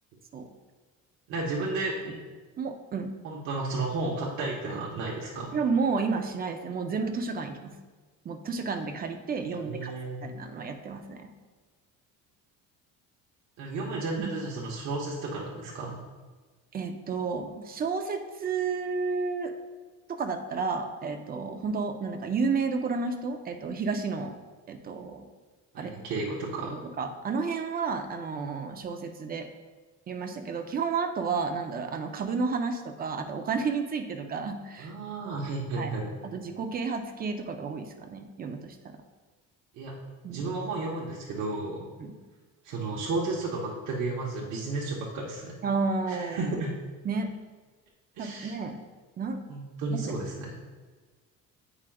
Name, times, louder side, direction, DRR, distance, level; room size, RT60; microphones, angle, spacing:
voice 1, 1.3-2.2 3.2-5.6 9.5-10.2 13.6-16.0 25.7-26.8 34.8-36.1 39.7-39.9 40.3-41.9 42.6-45.6 46.1-46.7 48.2-48.5 49.5-50.5, right 3 dB, 65° right, -3 dB, 0.9 m, -33 dB
voice 2, 2.6-3.1 5.5-7.7 8.2-9.9 10.2-11.3 14.2-14.3 16.7-19.5 20.1-24.3 24.7-25.2 25.8-25.9 26.7-29.5 30.1-34.9 35.8-35.9 36.2-38.9 40.2-40.4 42.0-42.1 45.6-46.5 47.0-47.3 48.2-48.8 49.2-49.4 49.9-50.1, right 4 dB, 30° right, 6 dB, 0.5 m, -31 dB
8.6 x 4.9 x 2.3 m, 1.4 s
cardioid pair, 135°, 32 cm